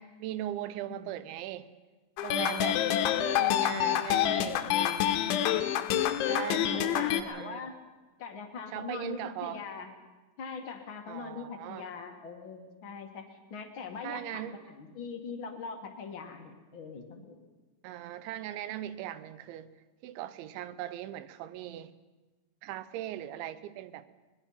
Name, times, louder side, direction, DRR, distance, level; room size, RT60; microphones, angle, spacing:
voice 1, 0.0-1.7 2.2-2.8 3.3-4.6 6.3-7.7 8.7-9.6 11.1-11.9 14.0-14.6 17.8-19.7 20.0-21.9 22.6-24.0, right 12 dB, 85° right, 3.2 m, -39 dB
sound 1, 2.2-7.2, left 11 dB, 85° left, 3.3 m, -27 dB
voice 2, 2.4-3.1 3.6-4.0 4.4-5.6 5.9-7.7 8.2-9.9 10.4-17.4, left 5 dB, 55° left, 1.3 m, -42 dB
23.0 x 21.0 x 5.7 m
omnidirectional pair, 5.3 m